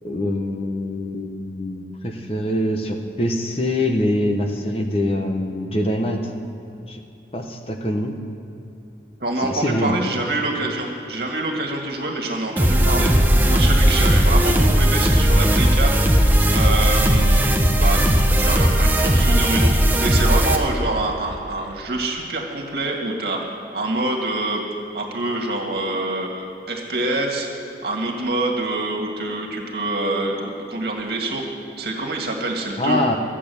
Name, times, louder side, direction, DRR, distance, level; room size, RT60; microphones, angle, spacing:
voice 1, 0.0-6.3 6.9-7.0 7.3-8.1 9.4-10.1 32.8-33.2, left 1 dB, 35° left, 3 dB, 0.9 m, -24 dB
voice 2, 9.2-23.4 23.7-24.6 24.9-27.5 27.8-31.4 31.8-33.0, right 2 dB, 60° right, 0 dB, 2.0 m, -26 dB
sound 1, 12.6-20.6, equal, 10° right, 0.8 m, -17 dB
14.0 x 8.5 x 7.0 m, 2.8 s
head